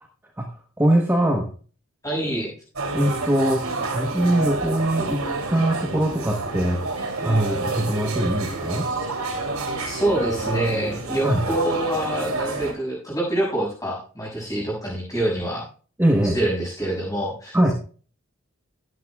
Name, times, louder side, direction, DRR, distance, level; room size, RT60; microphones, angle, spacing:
voice 1, 0.8-1.5 2.9-5.2 5.5-6.8 7.2-8.9 11.2-11.4 16.0-16.4 17.5-17.7, right 1 dB, 10° right, 0 dB, 1.0 m, -22 dB
voice 2, 2.0-2.5 8.9-9.0 9.9-15.7 16.3-17.7, right 1 dB, 15° left, -3 dB, 6.5 m, -26 dB
sound 1, 2.8-12.7, right 3 dB, 85° right, 2.7 m, -29 dB
16.5 x 9.6 x 2.3 m, 0.39 s
head